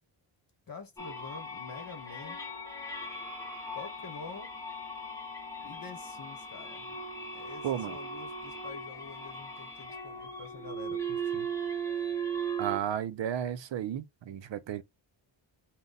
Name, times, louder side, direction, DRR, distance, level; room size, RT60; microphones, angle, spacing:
voice 1, 0.7-2.4 3.7-4.5 5.6-7.0 7.3-11.5, left 4 dB, 45° left, 1.0 m, -47 dB
sound 1, 1.0-12.8, right 3 dB, 5° left, 0.8 m, -38 dB
voice 2, 7.6-8.0 12.6-14.8, right 10 dB, 65° right, 0.6 m, -33 dB
3.9 x 2.2 x 3.8 m
wide cardioid pair, 155°, 49 cm